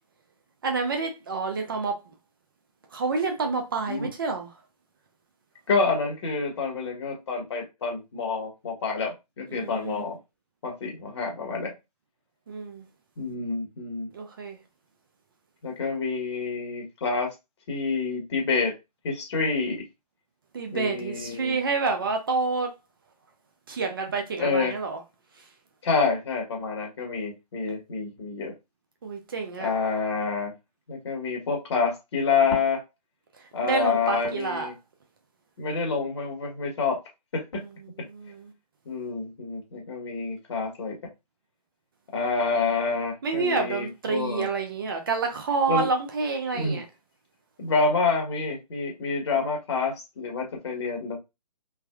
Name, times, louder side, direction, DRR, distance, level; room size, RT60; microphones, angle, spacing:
voice 1, 0.6-2.0 2.9-4.5 9.5-10.1 12.5-12.8 14.1-14.6 20.5-22.7 23.7-25.0 25.4-25.5 29.0-29.7 33.4-34.7 37.6-37.7 38.0-38.5 43.2-46.8, right 4 dB, 35° right, 0.5 m, -28 dB
voice 2, 5.7-10.2 10.6-11.7 13.2-14.1 15.6-17.3 17.7-18.7 19.0-19.8 20.7-21.5 24.4-24.7 25.8-28.5 29.6-30.5 30.9-32.8 33.5-34.7 35.6-37.0 37.3-37.6 38.9-41.0 42.1-44.5 45.7-45.9 46.5-46.8 47.6-51.2, left 4 dB, 45° left, 1.1 m, -28 dB
3.3 x 2.1 x 2.3 m
figure-of-eight pair, 140°, 21 cm